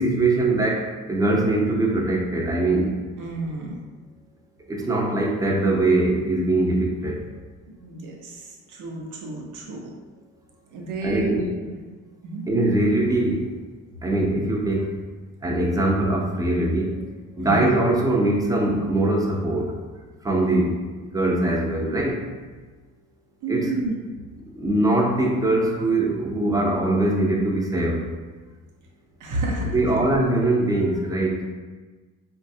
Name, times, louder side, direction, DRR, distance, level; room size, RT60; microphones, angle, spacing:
voice 1, 0.0-2.9 4.7-7.3 11.0-11.4 12.5-13.5 14.0-15.0 15.4-17.0 17.3-19.7 20.2-20.8 21.1-22.2 23.5-23.7 24.5-28.1 29.7-31.5, right 2 dB, 10° right, -1 dB, 0.6 m, -22 dB
voice 2, 3.2-3.8 7.7-9.9 10.7-11.7 12.2-12.4 17.4-17.7 23.4-24.0 29.2-30.0, right 2 dB, 70° right, -1 dB, 0.8 m, -30 dB
3.8 x 2.3 x 2.7 m, 1.3 s
supercardioid pair, 85°, 32 cm